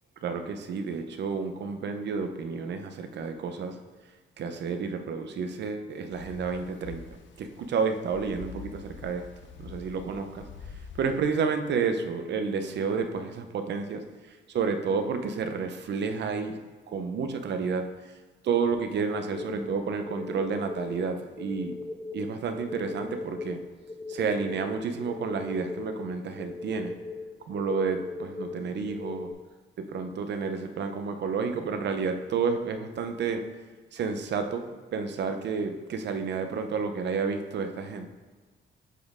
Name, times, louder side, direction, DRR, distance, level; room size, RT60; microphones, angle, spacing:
voice 1, 0.2-3.8 4.4-7.0 7.4-9.3 9.6-10.5 11.0-16.6 16.9-17.9 18.4-21.8 22.1-23.6 24.1-26.9 27.5-29.3 29.8-33.4 33.9-38.1, right 5 dB, 60° right, 7 dB, 0.7 m, -30 dB
sound 1, 6.1-11.2, left 6 dB, 70° left, 0.7 m, -45 dB
sound 2, 19.3-29.3, left 3 dB, 20° left, 1.1 m, -39 dB
8.2 x 4.3 x 3.6 m, 1.3 s
cardioid pair, 90°, 20 cm